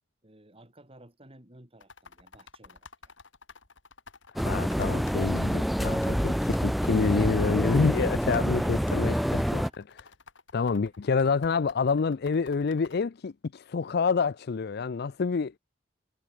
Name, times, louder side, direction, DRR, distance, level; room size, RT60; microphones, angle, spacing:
voice 1, 0.2-3.2, right 1 dB, 30° right, 5.9 m, -53 dB
sound 1, 1.8-13.0, left 4 dB, 85° left, 3.8 m, -50 dB
voice 2, 4.3-9.6 10.5-15.6, left 5 dB, 60° left, 0.5 m, -27 dB
sound 2, 4.4-9.7, equal, ahead, 0.6 m, -27 dB
head